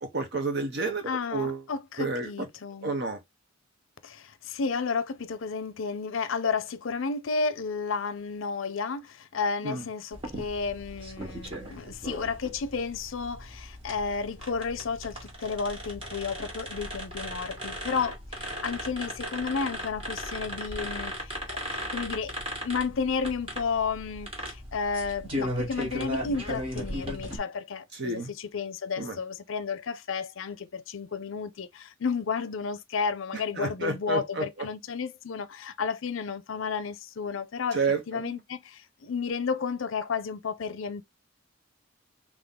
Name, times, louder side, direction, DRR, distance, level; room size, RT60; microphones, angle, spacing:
voice 1, 0.0-1.6 2.0-2.5 2.8-3.2 9.6-9.8 27.9-28.3 29.0-29.2 33.6-34.7 37.7-38.4, right 3 dB, 55° right, 0.9 m, -30 dB
voice 2, 1.1-2.9 4.0-22.3 22.6-37.8 38.1-41.0, left 5 dB, 70° left, 0.5 m, -32 dB
sound 1, 10.1-27.4, equal, 30° right, 1.6 m, -37 dB
3.7 x 3.1 x 3.9 m
head